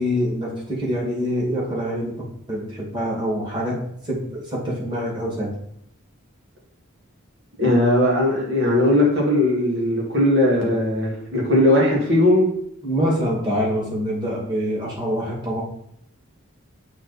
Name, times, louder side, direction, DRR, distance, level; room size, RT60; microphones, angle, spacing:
voice 1, 0.0-2.1 2.5-5.5 12.8-15.6, equal, 20° right, -4 dB, 2.0 m, -25 dB
voice 2, 7.6-12.5, left 1 dB, 60° right, -3 dB, 2.0 m, -18 dB
7.7 x 3.9 x 4.1 m, 0.70 s
head